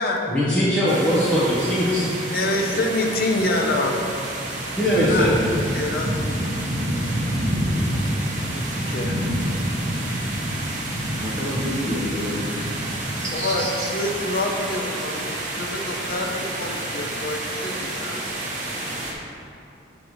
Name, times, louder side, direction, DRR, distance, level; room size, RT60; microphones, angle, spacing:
voice 1, 0.3-2.0 4.8-5.4, equal, 5° left, -11 dB, 1.1 m, -20 dB
sound 1, 0.9-19.1, right 1 dB, 40° right, 1.0 m, -28 dB
voice 2, 2.2-4.0 5.0-5.3 5.7-6.6 8.5-9.2 13.3-18.3, left 2 dB, 50° left, 1 dB, 0.7 m, -26 dB
voice 3, 11.1-12.4 13.2-13.9, equal, 15° right, -6 dB, 1.3 m, -29 dB
8.6 x 4.0 x 4.7 m, 2.5 s
head